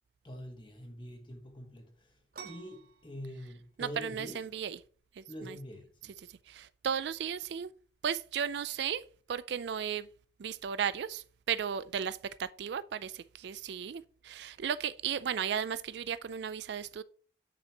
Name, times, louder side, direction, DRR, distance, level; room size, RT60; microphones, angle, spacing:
voice 1, 0.2-4.4 5.3-6.1, equal, 25° left, 1.4 m, -45 dB
sound 1, 2.3-9.7, right 6 dB, 50° right, 1.0 m, -56 dB
voice 2, 3.8-4.8 5.2-5.6 6.0-7.7 8.0-10.1 10.4-17.0, right 8 dB, 65° right, 0.4 m, -35 dB
9.1 x 6.9 x 2.9 m
head